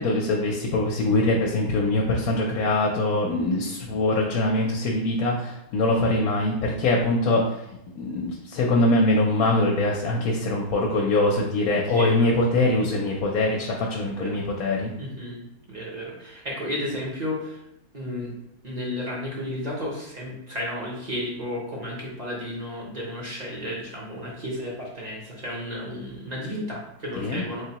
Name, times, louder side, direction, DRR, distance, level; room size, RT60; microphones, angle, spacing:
voice 1, 0.0-7.4 8.0-14.9 27.2-27.4, left 2 dB, 75° left, 0 dB, 1.0 m, -23 dB
voice 2, 11.9-12.3 14.2-14.4 15.0-15.4 15.7-17.6 17.9-18.3 18.6-27.7, left 1 dB, 35° right, -4 dB, 0.8 m, -33 dB
3.8 x 3.4 x 2.8 m, 0.83 s
omnidirectional pair, 1.6 m